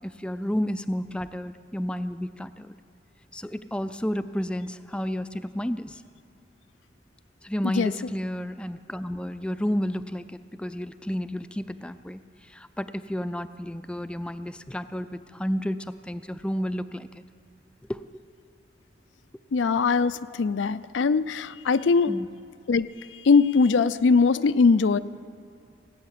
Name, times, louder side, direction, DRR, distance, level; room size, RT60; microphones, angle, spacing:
voice 1, 0.0-2.8 3.3-6.0 7.4-17.2 17.9-18.0 22.1-22.3, equal, 5° left, 11 dB, 0.3 m, -31 dB
voice 2, 19.5-22.1 22.7-22.9 23.2-25.0, left 4 dB, 90° left, 14 dB, 0.4 m, -21 dB
18.0 x 8.8 x 8.4 m, 2.3 s
head